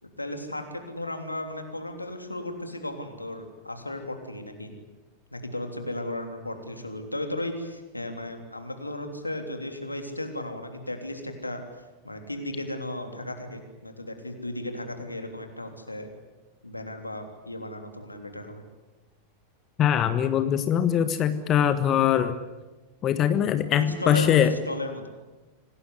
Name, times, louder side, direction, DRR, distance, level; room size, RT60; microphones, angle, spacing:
voice 1, 0.0-4.7 5.3-11.6 12.0-16.1 16.6-18.6 23.8-25.1, left 1 dB, 85° left, 5 dB, 3.4 m, -35 dB
voice 2, 19.8-22.4 23.0-24.6, left 9 dB, 30° left, 10 dB, 1.4 m, -22 dB
26.0 x 19.0 x 9.6 m, 1.2 s
figure-of-eight pair, 90°, 0 cm